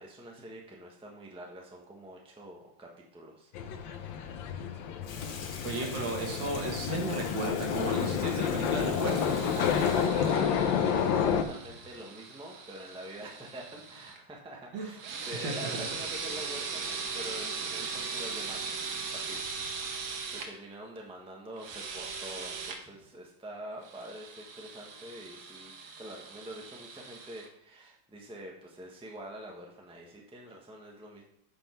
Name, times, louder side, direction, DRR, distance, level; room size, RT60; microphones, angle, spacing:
voice 1, 0.0-3.5 9.5-31.2, right 1 dB, 5° right, -1 dB, 1.0 m, -46 dB
sound 1, 3.5-11.4, left 7 dB, 75° left, 1.5 m, -29 dB
Water tap faucet / Sink (filling or washing), 5.0-12.1, left 4 dB, 60° left, 1.3 m, -45 dB
voice 2, 5.6-9.5 14.7-14.9 15.2-15.8, right 2 dB, 65° right, 1 dB, 2.1 m, -35 dB
sound 2, 8.9-14.2 15.0-20.5 21.6-22.8 23.8-27.5, right 5 dB, 85° right, 1.8 m, -39 dB
8.8 x 5.3 x 4.4 m, 0.70 s
omnidirectional pair, 2.1 m